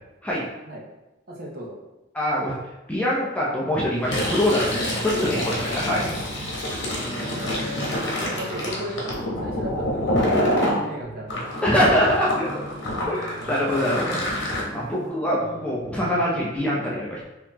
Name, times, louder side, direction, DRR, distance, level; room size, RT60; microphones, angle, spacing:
voice 1, 1.3-1.8 5.1-5.5 6.8-7.9 8.2-11.4, equal, 45° right, -3 dB, 0.7 m, -34 dB
voice 2, 2.1-2.6 2.9-6.1 6.4-6.6 11.6-12.5 13.0-17.2, equal, 5° left, -5 dB, 0.5 m, -24 dB
Fill (with liquid), 4.0-10.8 11.3-14.6, left 1 dB, 60° left, 1.0 m, -27 dB
sound 1, 7.0-16.6, right 1 dB, 10° right, 1.1 m, -41 dB
3.9 x 2.9 x 2.8 m, 1.0 s
head